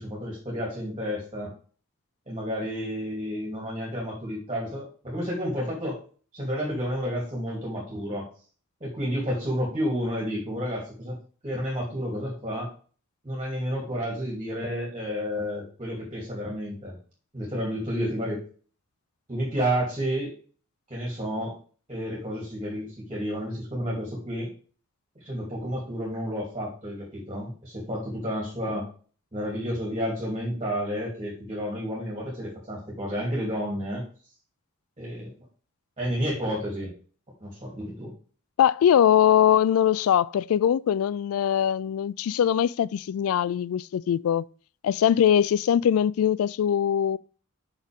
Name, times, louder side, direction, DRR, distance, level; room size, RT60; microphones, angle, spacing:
voice 1, 0.0-1.5 2.3-6.0 6.3-8.3 8.8-11.2 11.4-12.7 13.2-17.0 17.3-18.4 19.3-20.3 20.9-21.5 21.9-24.5 25.2-28.9 29.3-34.0 35.0-35.3 36.0-36.9 37.4-38.1, equal, 25° right, 2.8 m, -31 dB
voice 2, 38.6-44.4 44.8-47.2, left 9 dB, 75° left, 0.3 m, -22 dB
6.4 x 6.2 x 3.5 m
head